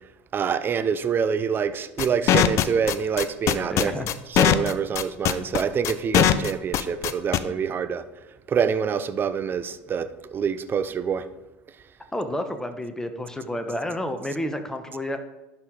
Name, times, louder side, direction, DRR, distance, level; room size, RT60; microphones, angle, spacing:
voice 1, 0.3-3.9 4.3-8.0 8.5-11.2, right 7 dB, 35° right, 0.6 m, -26 dB
sound 1, 2.0-7.4, left 11 dB, 50° left, 0.5 m, -20 dB
voice 2, 3.7-4.1 12.1-15.2, left 1 dB, 10° left, 1.1 m, -30 dB
11.5 x 4.7 x 4.0 m
hypercardioid pair, 75°, 6 cm